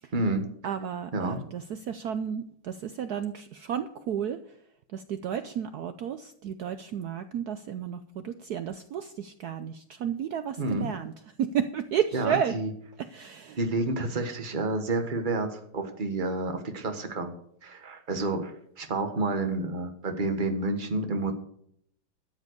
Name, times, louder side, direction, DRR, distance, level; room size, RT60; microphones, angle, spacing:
voice 1, 0.1-0.4 1.1-1.4 10.6-10.9 12.1-12.7 13.6-17.3 17.6-21.3, right 2 dB, 25° right, 6 dB, 1.3 m, -29 dB
voice 2, 0.6-4.4 4.9-11.1 11.4-12.6 13.0-13.6, right 8 dB, 70° right, 10 dB, 0.9 m, -32 dB
13.0 x 7.5 x 6.5 m, 0.69 s
omnidirectional pair, 2.2 m